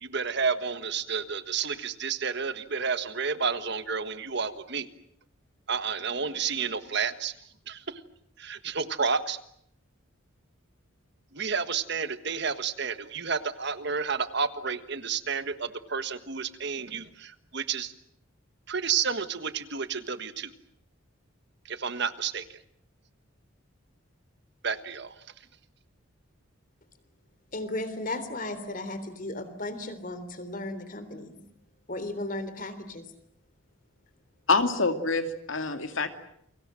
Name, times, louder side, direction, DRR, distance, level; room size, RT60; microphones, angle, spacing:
voice 1, 0.0-4.9 5.7-7.3 7.7-8.0 8.4-9.4 11.3-17.9 18.7-20.5 21.6-22.6 24.6-25.2, right 5 dB, 55° right, 11 dB, 1.5 m, -31 dB
voice 2, 27.5-31.3 31.9-33.0, left 2 dB, 40° left, 12 dB, 3.5 m, -35 dB
voice 3, 34.5-36.1, left 3 dB, 70° left, 7 dB, 2.5 m, -26 dB
29.5 x 23.5 x 7.7 m, 0.70 s
head